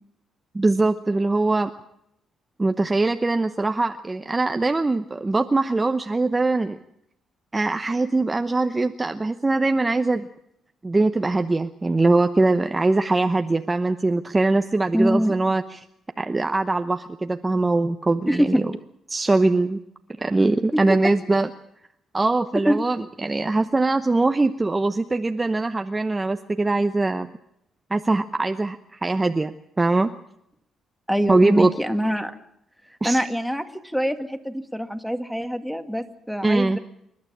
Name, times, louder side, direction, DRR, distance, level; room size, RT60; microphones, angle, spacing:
voice 1, 0.5-1.7 2.6-6.8 7.5-10.3 10.8-15.8 16.2-18.7 19.1-19.8 20.2-21.5 22.1-27.3 27.9-30.1 31.3-31.7 33.0-33.2 36.4-36.8, right 2 dB, 20° right, 7 dB, 0.9 m, -22 dB
voice 2, 14.9-15.3 18.3-18.6 20.7-20.8 22.7-22.8 31.1-32.3 33.0-36.8, equal, ahead, 7 dB, 2.1 m, -24 dB
27.5 x 12.0 x 8.7 m, 0.78 s
cardioid pair, 90°, 0 cm